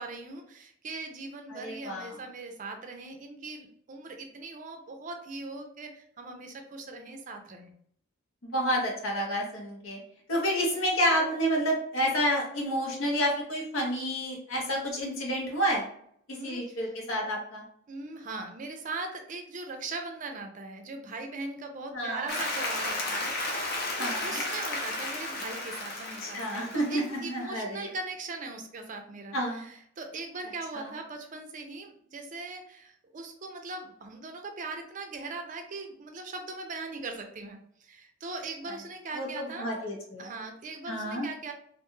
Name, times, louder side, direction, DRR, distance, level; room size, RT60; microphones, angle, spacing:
voice 1, 0.0-7.7 16.3-16.9 17.9-39.7 40.2-41.5, right 3 dB, 40° right, 4 dB, 0.4 m, -40 dB
voice 2, 1.5-2.2 8.5-10.0 10.3-15.8 16.3-17.6 21.9-22.3 24.0-24.4 26.2-27.9 29.3-29.6 30.7-30.9 39.1-40.3 40.9-41.3, equal, 85° left, -2 dB, 1.0 m, -29 dB
Applause, 22.3-27.3, left 2 dB, 50° left, 0.5 m, -33 dB
2.5 x 2.2 x 3.0 m, 0.67 s
head